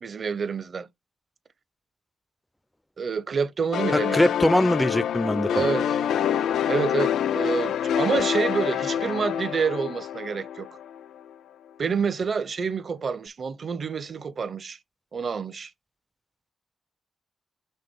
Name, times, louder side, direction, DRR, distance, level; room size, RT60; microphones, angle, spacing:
voice 1, 0.0-0.9 3.0-4.3 5.5-6.0 6.7-10.7 11.8-14.8 15.1-15.7, right 5 dB, 60° right, 0.8 m, -28 dB
sound 1, 3.7-11.2, left 9 dB, 85° left, 0.3 m, -26 dB
voice 2, 4.1-5.6, left 1 dB, 10° left, 0.4 m, -22 dB
5.7 x 3.1 x 5.4 m
supercardioid pair, 50°, 0 cm